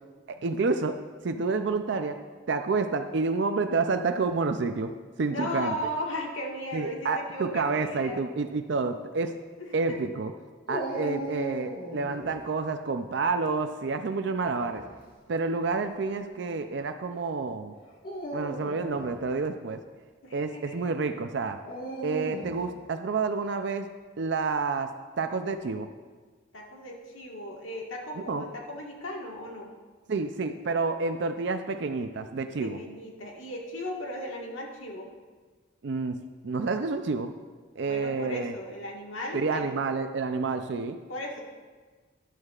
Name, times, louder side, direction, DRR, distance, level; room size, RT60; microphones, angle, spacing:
voice 1, 0.3-1.0 1.2-2.2 2.5-4.9 5.2-5.8 6.7-9.3 9.7-10.3 10.7-14.8 15.3-17.7 18.3-19.8 20.3-21.6 22.0-23.9 24.2-24.9 25.2-25.9 28.2-28.4 30.1-32.8 35.8-36.1 36.4-37.3 37.8-38.5 39.3-41.0, right 4 dB, 60° right, 8 dB, 0.4 m, -29 dB
voice 2, 5.3-8.2 9.6-10.0 15.3-15.4 20.2-20.9 26.5-29.7 32.6-35.1 37.9-39.7 41.1-41.4, left 1 dB, 85° left, -1 dB, 1.6 m, -36 dB
Dog, 10.7-12.3 14.4-14.9 15.7-15.8 17.9-19.2 21.6-22.6, right 1 dB, 45° left, 1.7 m, -36 dB
13.0 x 10.5 x 2.4 m, 1.4 s
head